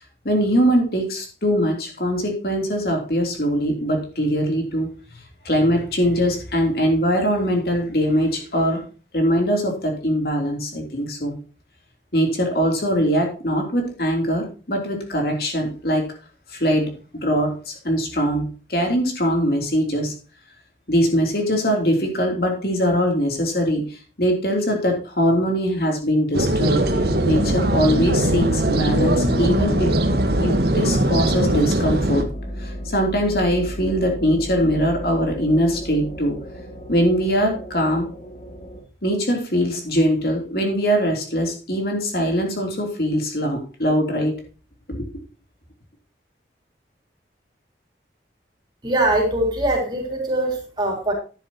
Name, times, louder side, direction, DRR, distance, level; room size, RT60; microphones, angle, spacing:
voice 1, 0.2-4.9 5.4-8.8 9.1-11.4 12.1-16.1 16.5-20.1 20.9-26.9 27.3-29.9 30.4-32.3 32.6-36.4 36.9-38.1 39.0-44.4 44.9-45.0, equal, 60° left, 2 dB, 3.1 m, -22 dB
sound 1, 26.3-32.2, right 1 dB, 65° right, 1.4 m, -20 dB
sound 2, 26.8-38.8, left 1 dB, 40° left, 2.8 m, -34 dB
voice 2, 48.8-51.1, right 1 dB, 25° right, 0 dB, 3.6 m, -22 dB
11.0 x 10.5 x 2.9 m, 0.34 s
head